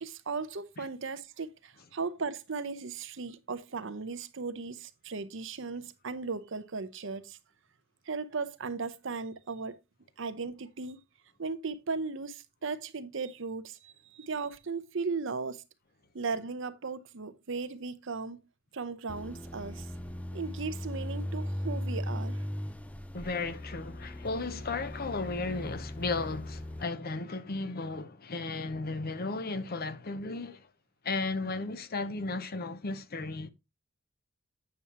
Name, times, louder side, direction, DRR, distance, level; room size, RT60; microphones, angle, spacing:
voice 1, 0.0-7.4 8.1-9.8 10.2-11.0 11.4-15.6 16.1-18.4 18.7-19.9 20.3-22.4, right 4 dB, 70° right, 0.8 m, -37 dB
sound 1, 19.1-26.8, left 1 dB, 5° left, 0.4 m, -38 dB
voice 2, 23.1-30.7 31.0-33.5, left 3 dB, 50° left, 0.8 m, -35 dB
8.8 x 7.0 x 2.9 m
head